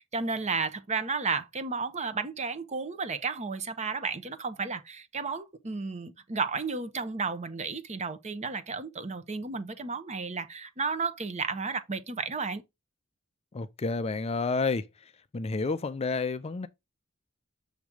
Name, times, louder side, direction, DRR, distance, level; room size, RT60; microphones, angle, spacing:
voice 1, 0.0-12.6, right 4 dB, 35° right, 0.8 m, -33 dB
voice 2, 13.5-14.9 15.3-16.7, left 4 dB, 30° left, 0.4 m, -30 dB
7.2 x 3.1 x 4.9 m
head